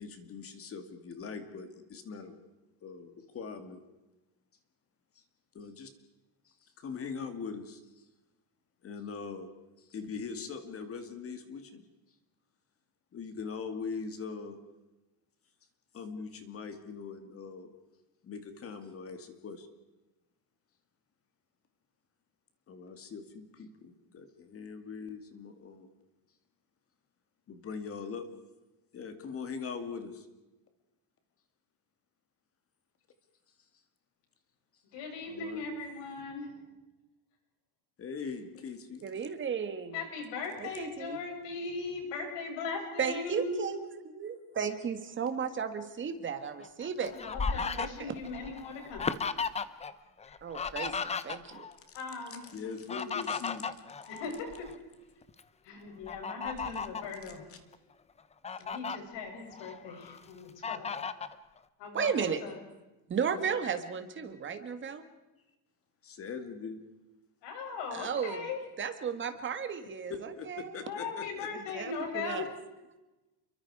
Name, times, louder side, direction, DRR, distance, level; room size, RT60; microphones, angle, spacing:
voice 1, 0.0-2.4 2.8-3.8 5.5-5.9 6.5-8.1 8.8-9.5 9.8-11.8 13.1-14.6 15.9-17.7 18.2-19.7 22.7-25.9 27.5-28.3 28.9-30.3 35.3-35.6 38.0-39.1 51.9-52.0 52.5-53.8 57.5-57.6 66.0-66.8 70.1-71.5, left 5 dB, 30° left, 8 dB, 2.4 m, -41 dB
voice 2, 34.9-36.5 39.9-43.6 47.0-49.1 50.3-50.4 51.9-52.4 54.1-54.7 55.6-57.5 58.6-60.9 61.8-62.5 67.4-68.6 70.8-72.5, left 4 dB, 75° left, 2 dB, 8.0 m, -39 dB
voice 3, 39.0-40.0 40.6-41.3 43.0-43.8 44.0-47.1 47.6-48.1 50.4-51.6 61.9-62.4 63.1-65.0 67.9-68.4 68.8-70.8 71.7-72.5, right 7 dB, 25° right, 8 dB, 1.8 m, -34 dB
Fowl, 46.6-49.9 50.2-51.7 52.6-54.7 55.2-55.4 56.0-57.1 57.7-57.8 58.2-59.0 59.5-60.2 60.6-61.3, left 5 dB, 15° left, 0.7 m, -35 dB
29.0 x 23.5 x 4.9 m, 1.0 s
cardioid pair, 170°, 43 cm